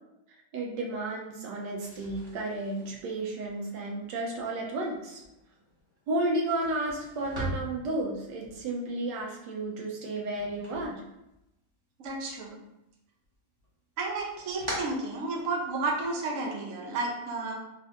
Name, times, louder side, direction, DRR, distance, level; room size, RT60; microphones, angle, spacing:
voice 1, 0.5-5.2 6.1-11.0, right 2 dB, 80° right, -2 dB, 1.3 m, -32 dB
sound 1, 1.7-11.7 12.0-12.9 13.2-15.9, equal, 20° right, 0.8 m, -43 dB
voice 2, 12.0-12.6 14.0-17.6, right 3 dB, 60° right, -1 dB, 1.0 m, -32 dB
4.2 x 3.3 x 2.4 m, 0.87 s
omnidirectional pair, 1.9 m